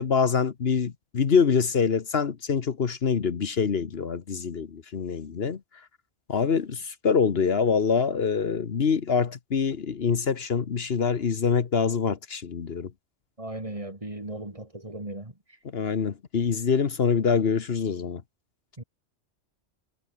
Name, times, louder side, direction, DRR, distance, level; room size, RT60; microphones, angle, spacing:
voice 1, 0.0-5.6 6.3-12.9 15.7-18.2, left 6 dB, 60° left, 1.4 m, -25 dB
voice 2, 13.4-15.3 18.8-18.9, right 1 dB, 30° right, 3.1 m, -37 dB
omnidirectional pair, 1.1 m